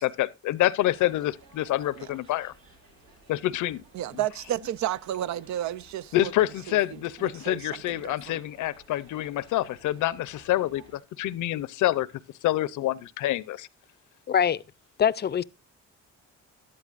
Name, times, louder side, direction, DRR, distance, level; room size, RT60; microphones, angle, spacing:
voice 1, 0.0-2.5 3.3-3.8 6.1-12.1 12.4-13.7, left 14 dB, 80° left, 0.6 m, -27 dB
sound 1, 0.8-11.0, right 2 dB, 90° right, 3.9 m, -56 dB
voice 2, 3.9-6.3 6.7-8.4, right 12 dB, 70° right, 0.5 m, -32 dB
voice 3, 14.3-14.6 15.0-15.4, left 8 dB, 35° left, 0.5 m, -23 dB
13.0 x 11.5 x 2.4 m
cardioid pair, 90°, 30 cm